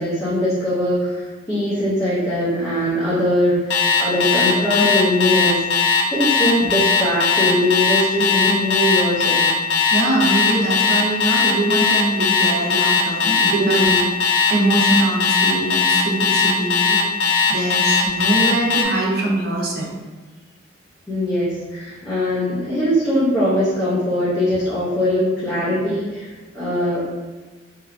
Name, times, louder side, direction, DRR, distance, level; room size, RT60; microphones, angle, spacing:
voice 1, 0.0-5.6 6.1-9.5 13.6-14.1 21.1-27.2, left 1 dB, 15° left, -11 dB, 0.6 m, -21 dB
Alarm, 3.7-18.9, left 6 dB, 70° left, 0.4 m, -18 dB
voice 2, 9.9-13.9 14.5-17.0 17.5-19.9, right 1 dB, 55° right, -3 dB, 0.6 m, -22 dB
2.9 x 2.2 x 2.4 m, 1.3 s
head